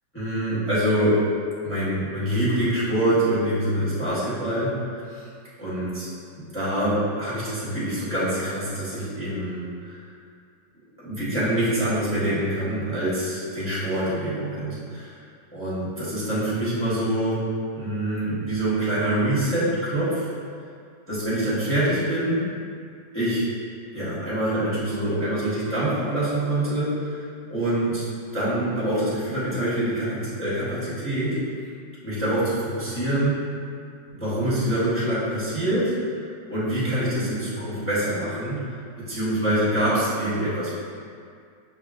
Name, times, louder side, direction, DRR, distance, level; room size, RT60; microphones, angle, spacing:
voice 1, 0.1-1.2 1.6-5.3 5.6-6.1 6.5-10.0 11.0-15.2 15.5-17.4 17.7-20.3 21.1-22.4 23.1-23.4 23.9-28.0 28.3-31.4 32.0-33.4 34.1-35.9 36.5-38.8 39.1-40.7, right 1 dB, 10° left, -10 dB, 1.0 m, -25 dB
5.6 x 3.3 x 2.5 m, 2.2 s
omnidirectional pair, 1.9 m